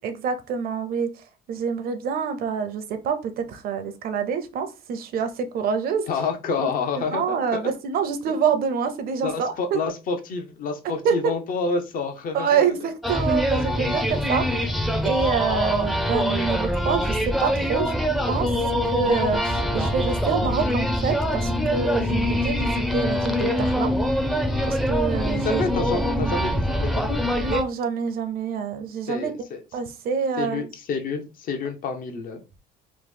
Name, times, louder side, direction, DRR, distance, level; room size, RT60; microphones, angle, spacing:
voice 1, 0.0-1.1 1.5-6.0 6.6-6.7 7.0-9.8 10.8-11.3 12.3-14.4 15.0-17.9 18.2-18.5 18.9-23.9 24.6-26.4 27.4-29.3 29.7-30.6, right 6 dB, 60° right, 8 dB, 0.6 m, -26 dB
voice 2, 6.1-7.2 7.5-7.6 8.3-8.4 9.2-12.7 25.4-27.2 29.1-29.6 30.4-32.6, left 4 dB, 55° left, 5 dB, 0.6 m, -28 dB
sound 1, 13.0-27.6, equal, ahead, 0.4 m, -24 dB
3.0 x 2.0 x 3.3 m, 0.29 s
cardioid pair, 110°, 17 cm